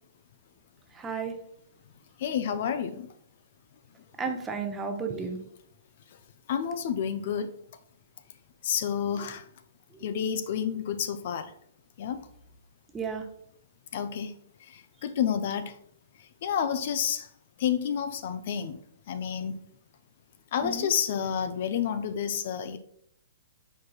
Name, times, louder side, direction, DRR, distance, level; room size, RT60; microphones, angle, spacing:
voice 1, 0.9-1.4 4.2-5.4 12.9-13.2 20.6-20.9, right 5 dB, 15° right, 4 dB, 0.7 m, -32 dB
voice 2, 2.2-3.1 6.5-7.5 8.6-9.5 10.0-11.5 12.0-12.3 13.9-14.3 14.6-15.8 16.4-17.3 17.6-18.8 19.1-19.6 20.5-22.8, left 8 dB, 55° left, 10 dB, 0.4 m, -30 dB
4.7 x 4.5 x 2.3 m, 0.67 s
hypercardioid pair, 120°, 0 cm